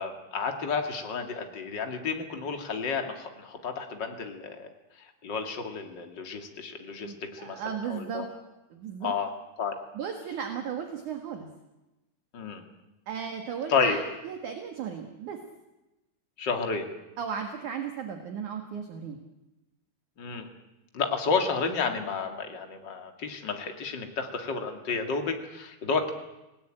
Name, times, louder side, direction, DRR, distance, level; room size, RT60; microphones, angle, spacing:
voice 1, 0.0-4.7 5.0-8.3 9.0-9.7 12.3-12.6 13.7-14.0 16.4-16.9 20.2-20.5 20.9-26.1, left 5 dB, 40° left, 5 dB, 1.5 m, -31 dB
voice 2, 7.0-8.3 8.7-9.1 9.9-11.5 13.1-14.0 14.2-15.4 17.2-19.2, right 7 dB, 55° right, 5 dB, 2.3 m, -35 dB
29.0 x 19.0 x 9.0 m, 1.0 s
omnidirectional pair, 5.8 m